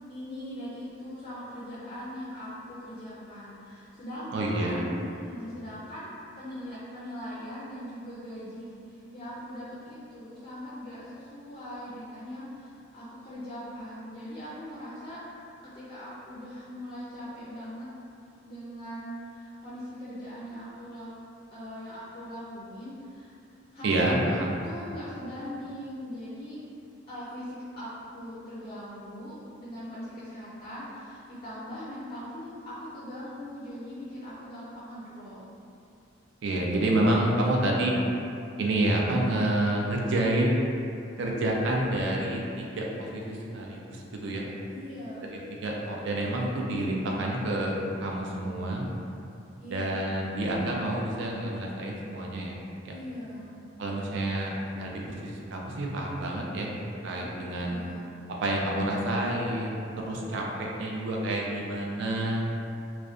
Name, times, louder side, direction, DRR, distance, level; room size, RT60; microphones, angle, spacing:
voice 1, 0.1-6.1 6.4-17.9 18.4-21.1 21.5-23.3 23.7-26.6 27.1-35.4 44.7-45.4 49.6-50.1 52.9-53.6 57.1-58.1, equal, 30° left, -10 dB, 0.4 m, -41 dB
voice 2, 4.3-4.8 23.8-24.5 36.4-37.9 38.6-40.7 41.2-44.5 45.3-48.8 49.7-52.6 52.8-52.9 53.8-56.8 57.0-57.8 58.4-62.4, right 1 dB, 60° right, -2 dB, 0.3 m, -28 dB
2.4 x 2.1 x 2.3 m, 2.6 s
head